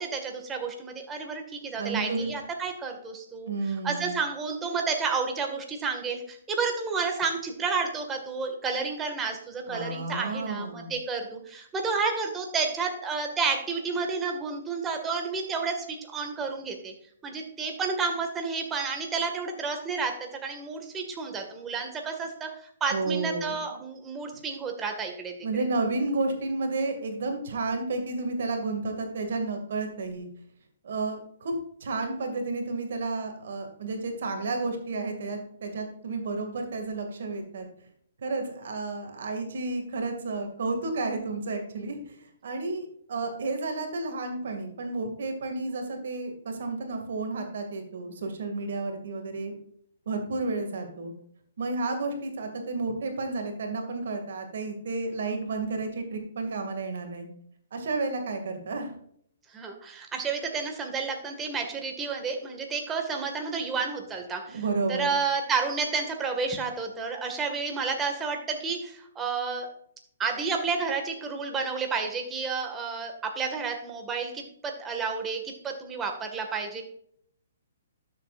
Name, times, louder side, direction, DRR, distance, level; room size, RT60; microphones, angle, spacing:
voice 1, 0.0-3.5 3.8-16.9 17.2-20.1 20.4-25.3 59.5-64.6 64.9-69.7 70.2-76.8, right 5 dB, 15° right, 3 dB, 1.9 m, -31 dB
voice 2, 1.8-2.3 3.5-4.1 9.7-10.9 22.9-23.8 25.4-30.3 30.8-31.5 31.8-37.7 38.2-49.5 50.1-51.1 51.6-57.3 57.7-58.9 64.5-65.2, right 3 dB, 65° right, 5 dB, 2.4 m, -31 dB
12.5 x 7.6 x 2.6 m, 0.67 s
hypercardioid pair, 135°, 0 cm